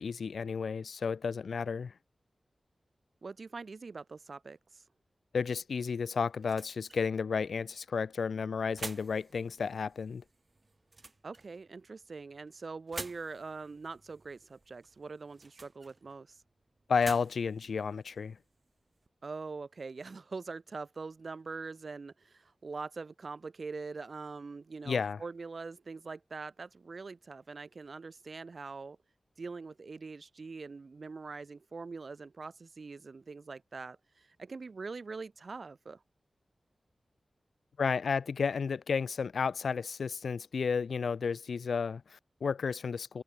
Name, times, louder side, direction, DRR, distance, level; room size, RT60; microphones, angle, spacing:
voice 1, 0.0-1.9 5.3-10.2 16.9-18.4 24.9-25.2 37.8-43.2, left 5 dB, 90° left, 0.3 m, -32 dB
voice 2, 3.2-4.8 11.2-16.4 19.2-29.0 29.4-36.0, right 4 dB, 60° right, 1.2 m, -43 dB
sound 1, 5.6-19.1, right 3 dB, 40° right, 1.5 m, -51 dB
wide cardioid pair, 80°, 0 cm